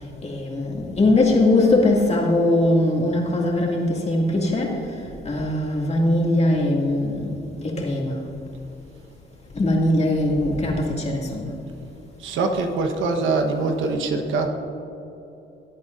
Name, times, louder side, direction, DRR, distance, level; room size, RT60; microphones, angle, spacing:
voice 1, 0.2-4.7 5.2-8.2 9.5-11.5, left 2 dB, 35° left, -2 dB, 2.4 m, -21 dB
voice 2, 12.2-14.5, right 3 dB, 80° right, 4 dB, 1.2 m, -23 dB
18.0 x 8.5 x 2.6 m, 3.0 s
cardioid pair, 90°, 20 cm